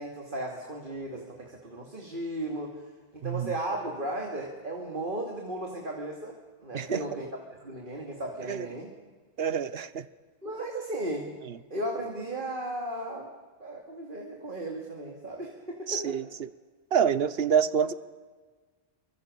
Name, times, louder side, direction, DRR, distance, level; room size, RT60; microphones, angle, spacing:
voice 1, 0.0-2.8 3.1-6.4 6.6-7.3 7.6-8.9 10.4-11.3 11.7-13.3 13.6-16.2, right 1 dB, 55° right, 1 dB, 2.8 m, -35 dB
voice 2, 9.4-10.0 15.9-16.5 16.9-17.9, right 7 dB, 70° right, 16 dB, 1.1 m, -27 dB
27.0 x 24.5 x 6.9 m, 1.5 s
omnidirectional pair, 1.1 m